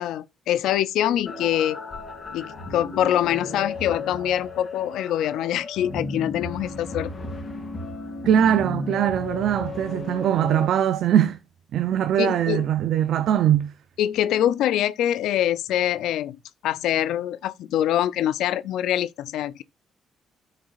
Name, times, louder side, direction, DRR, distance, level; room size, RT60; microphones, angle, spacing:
voice 1, 0.0-1.8 2.3-7.1 12.2-12.7 14.0-16.4 16.6-19.6, left 11 dB, 85° left, 0.4 m, -24 dB
sound 1, 1.3-10.7, left 3 dB, 35° left, 3.3 m, -34 dB
voice 2, 8.2-11.4 11.7-13.7, right 10 dB, 75° right, 0.6 m, -21 dB
12.0 x 6.5 x 2.5 m
cardioid pair, 90°, 0 cm